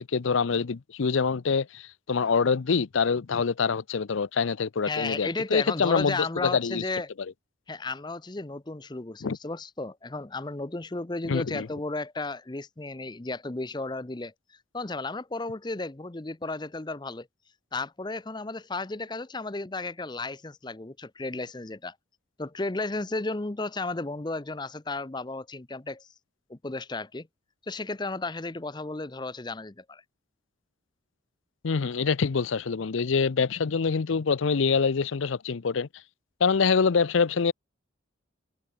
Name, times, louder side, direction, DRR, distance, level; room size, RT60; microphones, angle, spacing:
voice 1, 0.0-6.8 9.2-9.4 11.2-11.7 31.6-35.9 36.4-37.5, left 5 dB, 80° left, 0.6 m, -25 dB
voice 2, 4.8-7.1 7.7-14.3 14.7-17.3 17.7-21.9 22.4-26.1 26.5-27.3 27.6-30.0, left 3 dB, 20° left, 0.6 m, -34 dB
open air
head